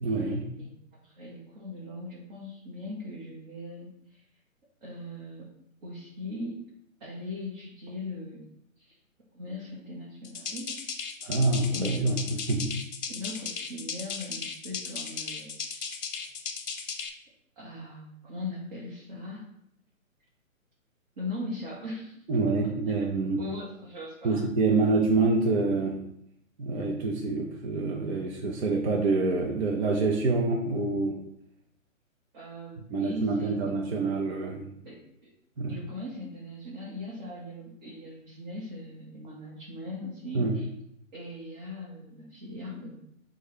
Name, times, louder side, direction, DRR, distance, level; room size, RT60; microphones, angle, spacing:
voice 1, 0.0-0.5 11.2-12.8 22.3-23.5 24.2-26.0 26.6-31.2 32.9-34.7 35.6-35.7 40.3-40.6, right 3 dB, 55° right, -1 dB, 0.7 m, -26 dB
voice 2, 1.0-4.2 4.8-5.5 5.8-6.6 7.0-8.4 8.8-8.9 9.3-10.8 11.7-12.0 13.1-16.1 17.6-19.4 21.2-22.2 23.4-24.5 32.3-33.7 34.8-35.3 35.7-40.7 41.1-42.9, left 2 dB, 35° right, -6 dB, 1.0 m, -40 dB
sound 1, 10.2-17.1, left 6 dB, 60° left, 0.7 m, -36 dB
6.4 x 2.4 x 3.1 m, 0.74 s
figure-of-eight pair, 140°, 41 cm